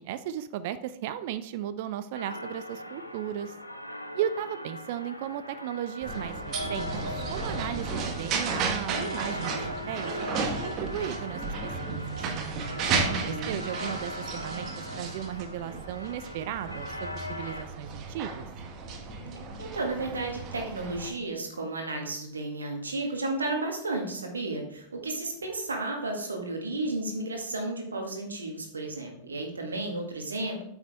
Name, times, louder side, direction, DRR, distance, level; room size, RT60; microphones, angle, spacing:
voice 1, 0.0-3.6 4.1-9.6 9.9-12.2 12.8-18.5, right 10 dB, 50° right, 13 dB, 0.5 m, -35 dB
sound 1, 2.1-17.6, left 1 dB, 90° left, 0.8 m, -39 dB
sound 2, 6.0-21.1, right 4 dB, 35° right, 1.5 m, -34 dB
voice 2, 13.0-13.6 19.6-30.6, right 2 dB, 75° right, 2 dB, 1.8 m, -33 dB
9.0 x 7.1 x 3.4 m, 0.70 s
figure-of-eight pair, 90°, 0 cm